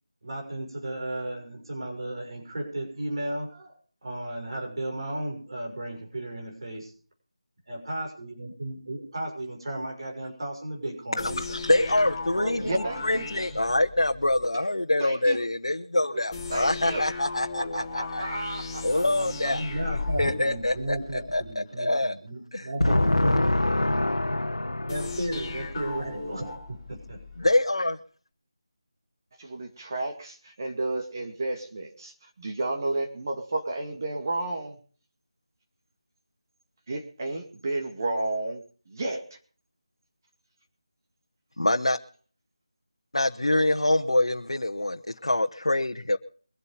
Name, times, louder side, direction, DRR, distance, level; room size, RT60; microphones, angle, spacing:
voice 1, 0.2-6.9 7.7-11.4 19.2-23.7 24.9-26.6 26.9-27.2, right 1 dB, 55° right, 6.5 m, -34 dB
voice 2, 11.2-12.7 13.0-18.2 18.8-19.6 20.2-21.4 21.8-22.1 22.5-25.1 27.4-28.0 41.6-42.0 43.1-46.2, left 1 dB, 75° left, 1.1 m, -25 dB
sound 1, 11.2-14.5 16.3-21.5 24.9-27.5, left 3 dB, 15° left, 3.1 m, -36 dB
voice 3, 12.4-13.3 14.6-14.7 15.0-15.4 16.0-16.2 16.5-17.0 17.6-19.0 22.9-23.0 29.4-34.8 36.9-39.4, right 2 dB, 40° right, 2.2 m, -32 dB
23.0 x 8.3 x 5.3 m
figure-of-eight pair, 165°, 3 cm